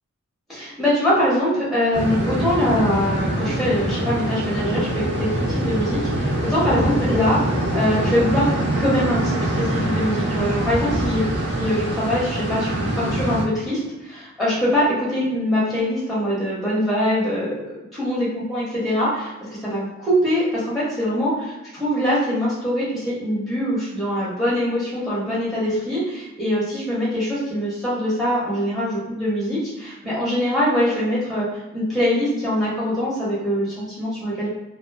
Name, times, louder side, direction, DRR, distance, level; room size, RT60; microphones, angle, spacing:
voice 1, 0.5-8.5 8.8-11.2 11.5-17.6 17.9-19.3 19.6-34.5, equal, ahead, -8 dB, 0.7 m, -23 dB
sound 1, 1.9-13.4, right 1 dB, 55° right, 0.5 m, -24 dB
2.4 x 2.4 x 2.3 m, 1.0 s
head